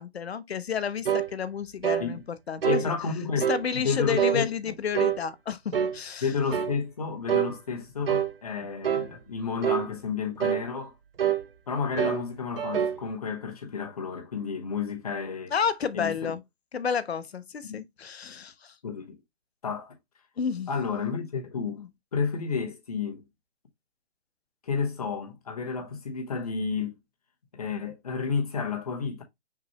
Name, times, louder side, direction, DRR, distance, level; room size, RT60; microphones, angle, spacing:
voice 1, 0.0-2.9 3.5-6.3 15.5-16.4 16.7-18.7 20.4-20.7 21.8-21.9, left 6 dB, 70° left, 0.7 m, -31 dB
sound 1, 1.0-1.3 1.8-2.1 2.6-2.9 3.4-3.6 4.2-4.4 4.9-5.2 5.7-6.0 6.5-6.7 7.3-7.5 8.0-8.3 8.8-9.1 9.6-9.9 10.4-10.6 11.2-11.4 12.0-12.2 12.6-13.0, right 9 dB, 60° right, 0.8 m, -25 dB
voice 2, 2.6-4.7 6.2-10.9 11.7-15.5 15.9-16.3 17.7-17.8 18.8-19.2 19.6-19.9 20.7-21.8 22.1-23.2 24.6-26.9 27.5-29.2, left 5 dB, 35° left, 1.0 m, -31 dB
5.9 x 3.0 x 2.9 m
hypercardioid pair, 175°, 32 cm